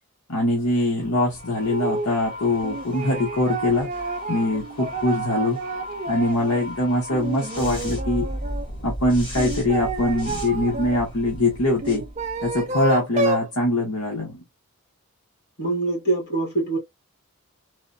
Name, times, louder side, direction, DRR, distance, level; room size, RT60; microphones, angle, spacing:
voice 1, 0.3-3.9 4.3-5.6 6.1-8.3 8.8-12.0 12.4-14.4, left 1 dB, 70° left, 0.9 m, -23 dB
sound 1, 0.6-13.0, equal, 20° left, 1.9 m, -36 dB
sound 2, 1.7-2.1 2.6-6.7 7.1-8.6 9.3-11.0 11.8-13.5, right 3 dB, 30° right, 0.4 m, -30 dB
voice 2, 15.6-16.8, right 3 dB, 50° left, 1.6 m, -24 dB
3.2 x 2.1 x 2.5 m
head